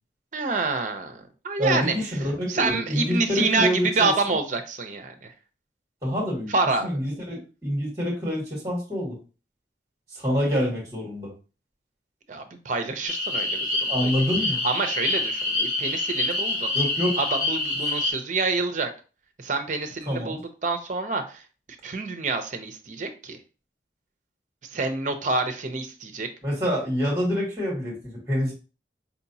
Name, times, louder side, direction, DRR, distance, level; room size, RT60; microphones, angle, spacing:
voice 1, 0.3-1.9 2.5-5.3 6.5-7.0 12.3-14.1 14.6-16.7 17.2-18.9 19.4-21.4 21.8-23.4 24.7-26.3, right 3 dB, 45° right, 7 dB, 0.6 m, -27 dB
voice 2, 1.6-4.3 6.0-6.5 6.8-9.1 10.1-11.3 13.9-14.6 16.7-17.1 20.1-20.4 26.4-28.5, equal, 15° right, -3 dB, 1.5 m, -26 dB
sound 1, 13.1-18.1, left 2 dB, 65° left, 2.3 m, -26 dB
4.5 x 2.8 x 2.7 m, 0.34 s
head